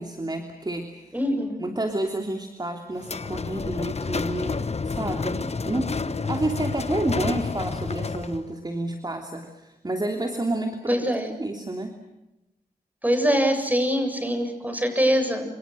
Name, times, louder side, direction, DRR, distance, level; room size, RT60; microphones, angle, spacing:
voice 1, 0.0-1.2 1.6-11.0 11.4-11.9, right 2 dB, 25° right, 4 dB, 3.1 m, -30 dB
voice 2, 1.1-1.6 10.9-11.3 13.0-15.5, equal, 10° right, 7 dB, 7.8 m, -23 dB
sound 1, 3.0-8.5, left 4 dB, 40° left, 1.2 m, -29 dB
28.0 x 27.0 x 6.4 m, 0.95 s
cardioid pair, 70°, 16 cm